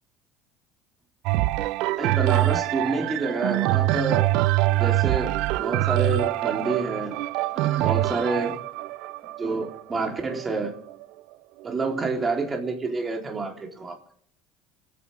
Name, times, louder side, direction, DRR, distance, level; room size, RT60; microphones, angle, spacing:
sound 1, 1.3-11.0 11.7-11.8, right 17 dB, 70° right, 0.5 m, -24 dB
voice 1, 2.0-4.3 4.8-8.6 9.4-10.7 11.6-13.9, right 3 dB, 25° right, 2 dB, 3.8 m, -28 dB
29.0 x 9.8 x 3.7 m, 0.63 s
supercardioid pair, 105°, 0 cm